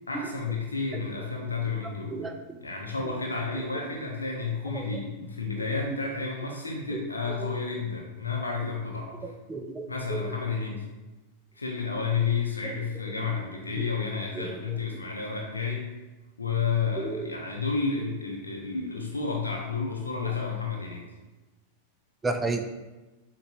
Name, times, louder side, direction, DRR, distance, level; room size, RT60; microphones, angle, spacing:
voice 1, 0.1-2.2 2.6-9.3 9.9-10.9 11.5-15.9 16.4-21.1, left 5 dB, 75° left, -1 dB, 0.5 m, -31 dB
voice 2, 2.1-2.6 4.7-4.9 5.8-6.0 6.9-7.0 7.4-7.5 9.2-10.3 12.6-12.8 13.2-13.3 13.8-13.9 14.3-14.8 17.0-17.3 20.2-20.3 22.2-22.6, right 3 dB, 15° right, 6 dB, 0.4 m, -33 dB
6.2 x 2.2 x 2.6 m, 1.2 s
figure-of-eight pair, 90°, 0 cm